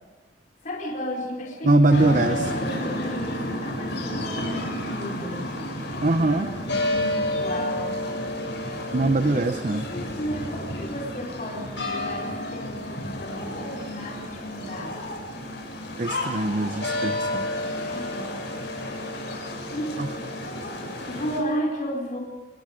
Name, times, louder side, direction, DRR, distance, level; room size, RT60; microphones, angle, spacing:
voice 1, 0.6-5.4 6.3-7.9 9.0-15.0 17.9-18.3 19.7-20.6 21.1-22.2, equal, 45° left, -2 dB, 4.5 m, -33 dB
voice 2, 1.6-2.4 6.0-6.5 8.9-9.8 16.0-17.5 20.0-20.1, right 2 dB, 45° right, 9 dB, 0.8 m, -22 dB
sound 1, 1.9-21.4, left 1 dB, 65° left, 7.4 m, -31 dB
30.0 x 21.0 x 5.2 m, 1.2 s
head